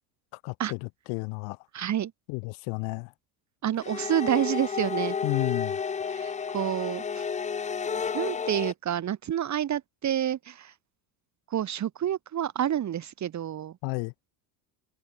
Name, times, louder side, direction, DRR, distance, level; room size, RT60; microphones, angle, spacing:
voice 1, 0.3-1.6 2.3-3.1 5.2-5.8 13.8-14.1, left 35 dB, 75° left, 2.2 m, -32 dB
voice 2, 1.7-2.1 3.6-5.2 6.1-7.3 8.1-10.7 11.5-13.8, right 10 dB, 35° right, 2.0 m, -29 dB
sound 1, 3.8-8.7, left 6 dB, 15° left, 0.6 m, -31 dB
supercardioid pair, 110°, 46 cm